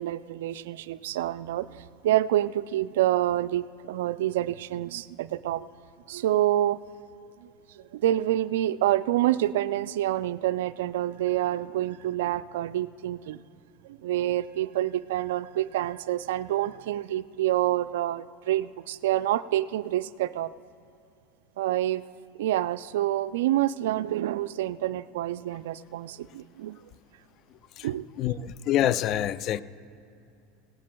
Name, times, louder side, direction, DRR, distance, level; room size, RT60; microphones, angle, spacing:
voice 1, 0.0-5.7 6.1-6.8 7.4-7.5 7.7-13.4 13.8-20.5 21.6-22.0 22.4-26.8 27.8-28.5, right 13 dB, 75° right, 0.3 m, -27 dB
voice 2, 28.2-29.6, left 12 dB, 50° left, 0.4 m, -26 dB
19.0 x 17.0 x 2.3 m
hypercardioid pair, 85°, 0 cm